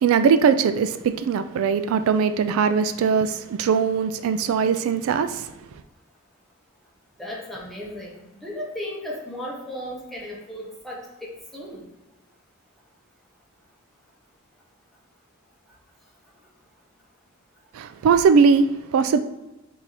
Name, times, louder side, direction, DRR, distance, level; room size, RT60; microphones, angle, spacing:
voice 1, 0.0-5.5 17.7-19.2, right 6 dB, 85° right, 0.3 m, -20 dB
voice 2, 7.2-11.8, left 1 dB, ahead, 1.0 m, -35 dB
4.6 x 2.8 x 4.0 m
head